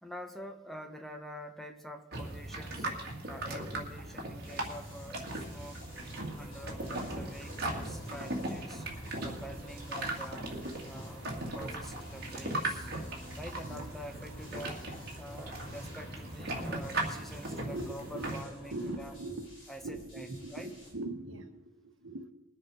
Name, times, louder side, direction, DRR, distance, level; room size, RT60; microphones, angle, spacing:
voice 1, 0.0-2.9 3.3-5.9 6.4-8.9 9.2-10.5 10.8-11.3 11.5-12.9 13.4-14.9 15.2-19.1 19.7-20.7, equal, ahead, 5 dB, 1.1 m, -46 dB
sound 1, 2.1-18.4, right 1 dB, 55° right, 2.2 m, -38 dB
sound 2, 4.4-20.9, equal, 50° left, 6.3 m, -56 dB
sound 3, 5.9-19.2, equal, 25° left, 4.2 m, -51 dB
voice 2, 13.6-14.0 17.2-17.3 17.5-18.4 18.7-19.5 19.8-22.3, right 2 dB, 75° right, 7 dB, 1.4 m, -41 dB
21.5 x 7.4 x 4.9 m, 0.99 s
head